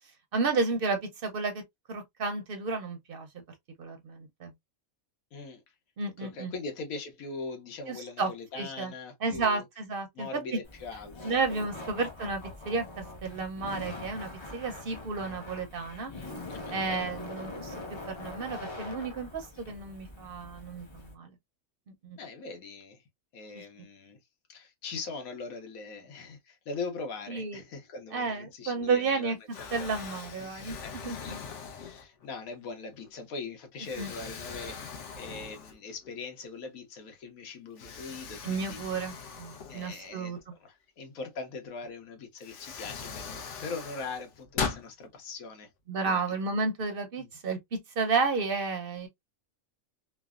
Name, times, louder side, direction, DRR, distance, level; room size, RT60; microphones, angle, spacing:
voice 1, 0.3-1.6 1.9-3.4 3.8-4.5 6.0-6.5 7.9-8.3 8.6-8.9 9.2-10.6 11.2-16.1 16.7-21.3 22.0-22.2 23.5-23.6 27.3-27.6 28.1-29.4 29.7-30.8 31.0-31.4 34.0-34.1 38.4-40.4 45.9-49.1, right 4 dB, 55° right, 0.6 m, -32 dB
voice 2, 5.3-5.6 6.2-9.6 10.1-11.4 11.8-11.9 14.8-15.0 16.5-17.1 22.2-23.0 23.3-24.2 24.5-29.3 29.6-29.9 30.8-38.8 39.7-45.7 46.0-46.2 47.2-47.3, left 4 dB, 85° left, 1.2 m, -41 dB
Laughter, 10.6-21.1, left 2 dB, 40° left, 0.4 m, -43 dB
Explosion, 28.8-29.2 29.5-32.3 32.9-33.1 33.8-36.1 36.4-36.5 37.8-40.4 41.8-41.9 42.4-44.9, left 5 dB, 65° left, 0.9 m, -40 dB
3.2 x 2.0 x 2.3 m
omnidirectional pair, 1.4 m